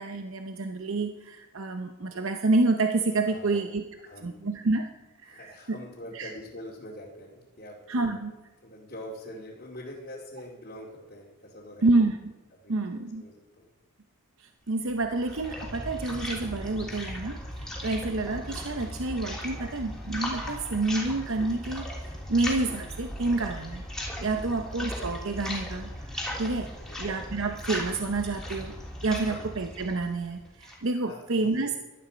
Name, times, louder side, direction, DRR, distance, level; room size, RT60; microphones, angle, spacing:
voice 1, 0.0-3.8 4.2-4.9 5.2-5.8 6.1-6.3 7.9-8.3 11.8-12.3 12.7-13.2 14.4-23.8 24.2-26.7 27.0-28.7 29.0-31.7, right 3 dB, 60° right, 6 dB, 0.8 m, -28 dB
voice 2, 3.2-3.6 4.0-4.5 5.3-8.2 8.6-12.0 12.6-13.7 24.3-24.6 26.4-27.1 29.2-29.5 31.1-31.7, left 1 dB, 45° left, -5 dB, 2.4 m, -45 dB
sound 1, 14.9-30.9, left 1 dB, 5° left, 3.3 m, -37 dB
17.5 x 12.5 x 5.1 m, 1.2 s
head